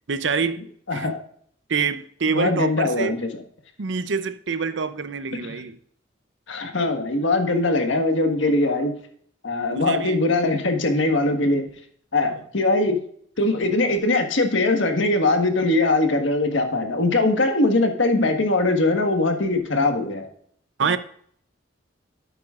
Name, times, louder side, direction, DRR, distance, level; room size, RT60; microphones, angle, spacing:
voice 1, 0.1-0.6 0.9-1.2 1.7-3.2 3.8-5.8 9.7-10.2 20.8-21.0, right 5 dB, 70° right, 0.7 m, -26 dB
voice 2, 0.9-1.2 2.3-3.3 5.4-5.6 6.5-8.9 9.4-11.7 12.1-13.0 13.4-20.3, left 2 dB, 85° left, 1.5 m, -21 dB
12.0 x 8.8 x 2.5 m
head